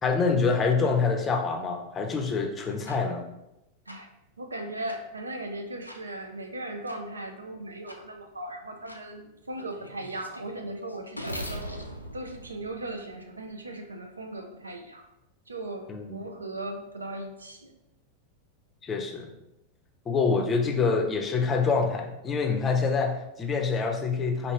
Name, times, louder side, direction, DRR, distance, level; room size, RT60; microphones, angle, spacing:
voice 1, 0.0-3.2 15.9-16.2 18.8-19.3 20.1-24.5, left 4 dB, 20° left, 3 dB, 0.5 m, -26 dB
sound 1, 2.9-3.0 3.9-4.0 4.9-5.0 5.9-6.0 6.9-7.0 7.9-8.0 8.9-9.0 9.6-13.4, equal, 90° left, 0.3 m, -40 dB
voice 2, 4.4-11.8 12.1-15.1 15.5-17.7, right 1 dB, 75° right, 4 dB, 0.4 m, -38 dB
4.4 x 2.5 x 3.3 m, 0.89 s
figure-of-eight pair, 90°, 0 cm